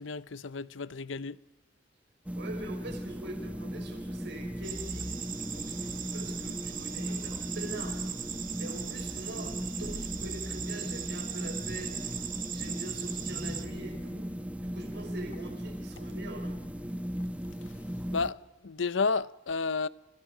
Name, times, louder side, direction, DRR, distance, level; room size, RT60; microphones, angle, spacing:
voice 1, 0.0-1.4 18.1-19.9, left 4 dB, 70° left, 0.7 m, -31 dB
sound 1, 2.2-18.3, equal, 5° right, 1.2 m, -37 dB
voice 2, 2.4-5.2 5.5-8.0 8.6-11.9 12.5-14.3 14.6-16.6, right 1 dB, 60° right, 5.5 m, -44 dB
sound 2, 4.6-13.6, right 9 dB, 45° right, 2.1 m, -39 dB
29.0 x 27.5 x 5.0 m
head